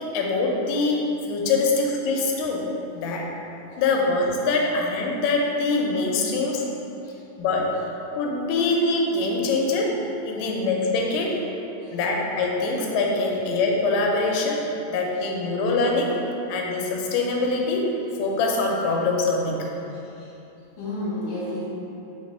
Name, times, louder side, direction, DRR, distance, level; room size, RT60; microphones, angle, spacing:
voice 1, 0.0-3.3 3.8-6.6 7.4-7.8 8.1-10.0 10.3-11.4 11.9-16.2 16.5-17.9 18.2-19.7, left 3 dB, 90° left, 0 dB, 3.1 m, -24 dB
voice 2, 19.9-20.3 20.8-21.6, left 1 dB, 60° left, -9 dB, 2.6 m, -33 dB
6.8 x 3.7 x 5.4 m, 2.9 s
omnidirectional pair, 5.0 m